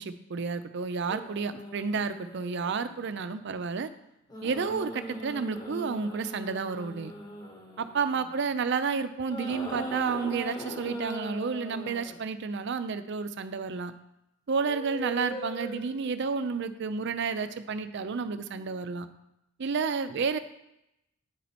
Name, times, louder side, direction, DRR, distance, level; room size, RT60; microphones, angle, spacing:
voice 1, 0.0-3.9 4.4-7.1 7.8-13.9 14.5-19.1 19.6-20.4, right 5 dB, 60° right, 11 dB, 0.5 m, -31 dB
sound 1, 1.1-3.2 4.3-8.6 9.3-12.2 14.5-16.1 17.3-17.6, equal, 20° left, 1.0 m, -40 dB
9.3 x 4.4 x 4.2 m, 0.85 s
head